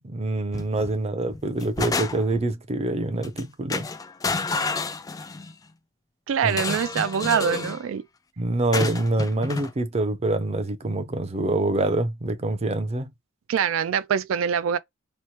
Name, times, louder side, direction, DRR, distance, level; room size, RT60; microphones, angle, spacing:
voice 1, 0.0-3.9 6.4-6.6 8.4-13.1, right 2 dB, 30° right, 0.6 m, -25 dB
sound 1, 0.5-0.9 1.3-2.5 3.2-3.4 3.7-5.5 6.5-7.8 8.7-9.7, left 3 dB, 20° left, 0.3 m, -30 dB
voice 2, 6.3-8.1 13.5-14.8, right 7 dB, 85° right, 0.3 m, -24 dB
3.0 x 2.1 x 2.8 m
head